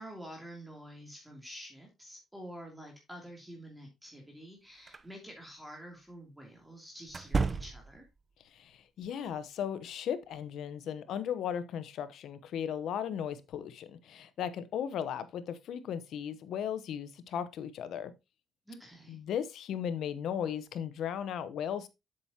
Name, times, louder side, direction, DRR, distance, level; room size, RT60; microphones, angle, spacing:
voice 1, 0.0-8.1 18.7-19.2, equal, 5° right, 2.8 m, -48 dB
sound 1, 4.9-5.0 7.1-8.1, right 4 dB, 35° right, 0.7 m, -32 dB
voice 2, 8.5-18.1 19.1-21.9, left 9 dB, 75° left, 0.9 m, -36 dB
7.8 x 7.2 x 2.8 m
cardioid pair, 90°, 0 cm